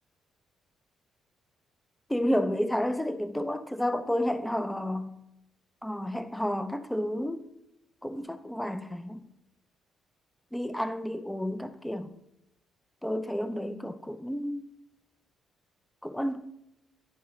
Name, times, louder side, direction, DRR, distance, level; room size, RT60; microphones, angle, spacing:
voice 1, 2.1-5.1 5.8-7.4 8.0-9.2 10.5-12.1 13.0-14.6 16.0-16.5, equal, 5° left, 0.4 m, -31 dB
10.0 x 3.6 x 3.1 m
cardioid pair, 90°, 0 cm